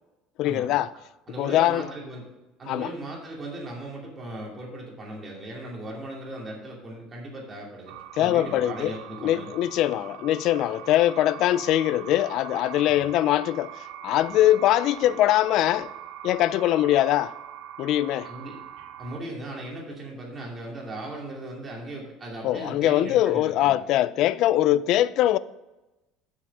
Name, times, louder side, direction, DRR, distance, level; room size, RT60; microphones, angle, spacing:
voice 1, 0.4-0.9 1.4-1.9 2.7-2.9 8.2-8.9 9.2-13.7 14.0-15.9 16.2-17.3 17.8-18.3 22.4-25.4, left 13 dB, 50° left, 0.3 m, -22 dB
voice 2, 1.3-2.2 2.6-9.5 12.9-13.0 18.2-18.6 19.0-23.7, right 1 dB, 20° right, 2.6 m, -38 dB
sound 1, 7.9-19.2, right 10 dB, 75° right, 0.6 m, -42 dB
7.6 x 6.5 x 6.0 m
cardioid pair, 155°, 0 cm